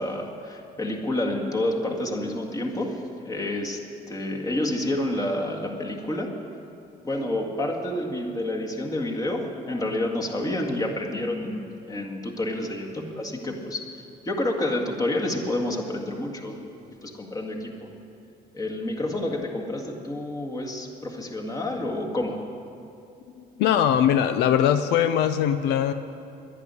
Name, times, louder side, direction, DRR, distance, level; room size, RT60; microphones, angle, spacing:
voice 1, 0.0-3.8 4.1-6.4 7.0-13.8 14.2-16.6 17.0-17.9 18.5-22.5, left 1 dB, 20° left, 1 dB, 1.9 m, -29 dB
voice 2, 23.6-25.9, left 9 dB, 85° left, 10 dB, 0.6 m, -21 dB
11.0 x 10.5 x 9.6 m, 2.6 s
cardioid pair, 110°, 17 cm